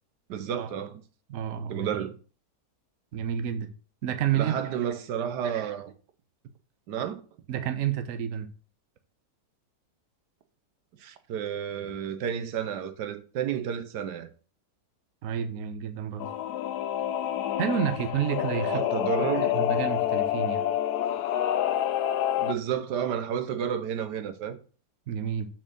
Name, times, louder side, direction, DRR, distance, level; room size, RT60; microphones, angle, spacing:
voice 1, 0.3-1.0 1.7-2.1 4.3-5.9 6.9-7.2 11.0-14.3 18.6-19.6 22.4-24.6, right 8 dB, 85° right, 1.4 m, -31 dB
voice 2, 1.3-1.9 3.1-3.7 4.0-4.5 7.5-8.5 15.2-16.3 17.6-18.8 19.5-20.7 25.1-25.5, right 9 dB, 60° right, 1.1 m, -29 dB
Singing / Musical instrument, 16.2-22.5, left 11 dB, 75° left, 1.1 m, -28 dB
6.3 x 4.3 x 6.1 m
omnidirectional pair, 1.8 m